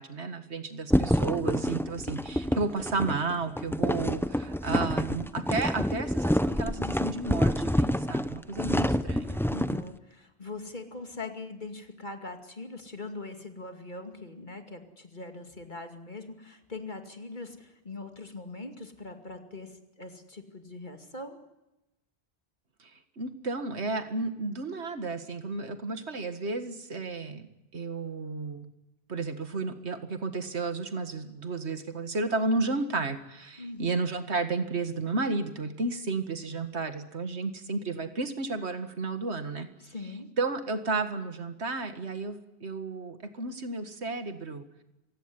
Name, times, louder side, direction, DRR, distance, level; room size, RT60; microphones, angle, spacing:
voice 1, 0.0-9.4 22.8-22.9 23.2-27.5 27.7-28.7 29.1-39.7 40.4-42.4 42.6-44.6, right 3 dB, 80° right, 9 dB, 2.1 m, -32 dB
sound 1, 0.9-9.8, equal, 5° left, 0.6 m, -27 dB
voice 2, 9.5-21.4 33.6-33.9 39.8-40.3, left 3 dB, 45° left, 5 dB, 2.6 m, -42 dB
27.0 x 16.5 x 9.8 m, 0.98 s
omnidirectional pair, 1.1 m